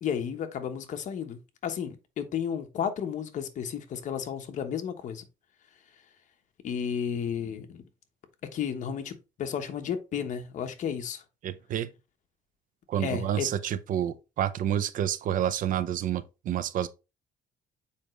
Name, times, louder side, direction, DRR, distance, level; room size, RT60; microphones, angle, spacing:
voice 1, 0.0-5.2 6.6-7.8 8.5-11.2 13.0-13.5, left 8 dB, 55° left, 1.2 m, -33 dB
voice 2, 11.4-11.9 12.9-16.9, right 10 dB, 60° right, 0.7 m, -29 dB
7.3 x 5.0 x 3.3 m
cardioid pair, 145°, 16 cm